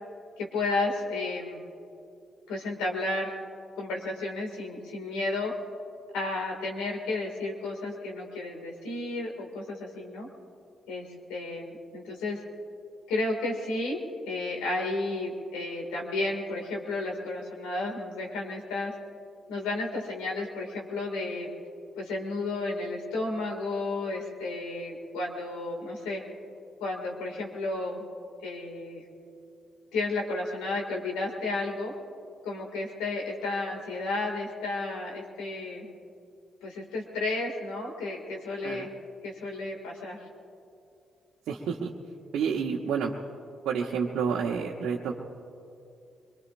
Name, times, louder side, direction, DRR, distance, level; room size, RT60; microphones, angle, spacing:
voice 1, 0.4-1.6 2.5-3.4 3.8-5.5 6.1-10.3 10.9-12.4 13.1-14.0 14.3-18.9 19.5-21.5 22.0-26.2 26.8-28.0 28.4-29.0 29.9-31.9 32.4-35.9 36.6-38.9 39.2-40.2, left 2 dB, 85° left, 0 dB, 2.3 m, -32 dB
voice 2, 41.5-41.9 42.3-43.1 43.6-45.1, right 6 dB, 75° right, -3 dB, 1.0 m, -29 dB
24.0 x 22.5 x 2.6 m, 2.6 s
hypercardioid pair, 45°, 0 cm